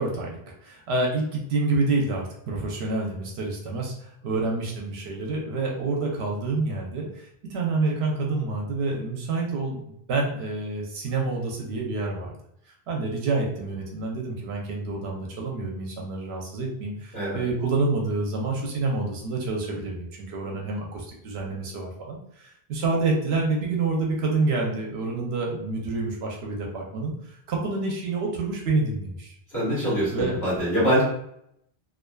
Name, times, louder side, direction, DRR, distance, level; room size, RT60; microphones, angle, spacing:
voice 1, 0.0-12.3 12.9-29.3 30.1-30.4, right 3 dB, 85° right, -1 dB, 0.9 m, -28 dB
voice 2, 29.5-31.0, equal, 15° left, -10 dB, 1.5 m, -24 dB
2.4 x 2.4 x 2.2 m, 0.74 s
omnidirectional pair, 1.1 m